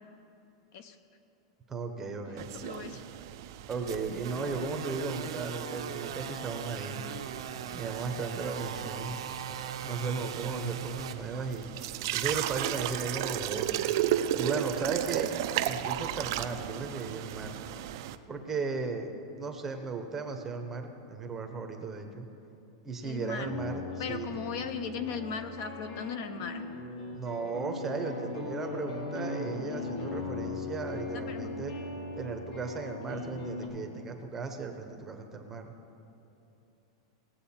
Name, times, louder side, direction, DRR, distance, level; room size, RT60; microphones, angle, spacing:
voice 1, 1.7-2.5 3.7-7.2 7.7-9.2 9.8-11.7 12.1-13.9 14.3-15.3 15.6-17.6 18.3-19.1 19.4-22.3 22.8-24.3 27.1-31.7 32.2-35.7, right 4 dB, 10° right, 4 dB, 0.7 m, -36 dB
sound 1, 2.4-18.2, right 12 dB, 50° right, 0.4 m, -35 dB
voice 2, 2.5-3.0 23.0-23.5 24.0-26.6 31.1-31.6, left 6 dB, 40° left, 10 dB, 0.5 m, -37 dB
sound 2, 3.7-11.1, right 9 dB, 80° right, 0.8 m, -39 dB
sound 3, 23.2-33.7, left 3 dB, 70° left, 2.1 m, -38 dB
18.5 x 7.7 x 4.3 m, 2.8 s
supercardioid pair, 170°, 3 cm